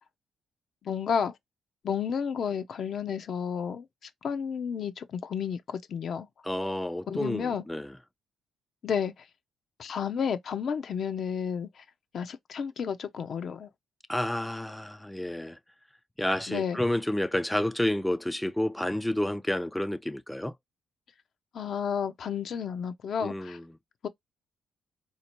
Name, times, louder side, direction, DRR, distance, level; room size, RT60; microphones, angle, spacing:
voice 1, 0.8-1.3 1.8-3.8 4.2-6.3 7.1-7.6 8.8-9.1 9.8-11.7 12.1-13.7 16.5-16.8 21.5-23.6 24.0-24.1, left 7 dB, 60° left, 0.6 m, -31 dB
voice 2, 6.4-8.0 14.1-15.6 16.2-20.5 23.2-23.6, left 1 dB, 5° left, 0.3 m, -30 dB
4.2 x 2.8 x 2.9 m
cardioid pair, 90°, 0 cm